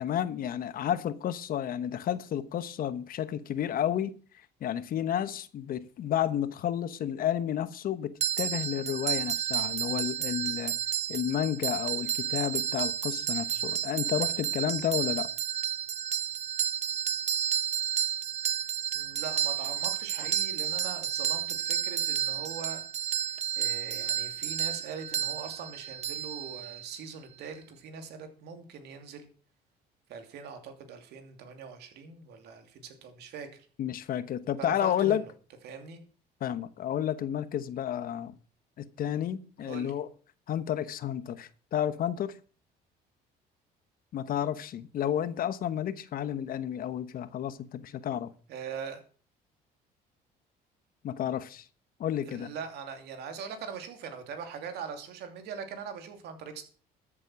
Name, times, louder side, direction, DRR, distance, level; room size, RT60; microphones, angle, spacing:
voice 1, 0.0-4.2 4.6-10.7 11.1-15.3 33.8-35.2 36.4-38.4 38.8-40.1 40.5-42.3 44.1-48.3 51.0-51.6 52.0-52.5, left 10 dB, 60° left, 1.1 m, -31 dB
sound 1, 8.2-27.0, right 9 dB, 40° right, 0.5 m, -31 dB
voice 2, 18.9-29.3 30.1-33.7 34.6-35.2 35.6-36.0 39.6-40.0 48.5-49.0 52.3-56.6, right 6 dB, 75° right, 2.7 m, -42 dB
13.5 x 7.5 x 6.2 m
cardioid pair, 110°, 17 cm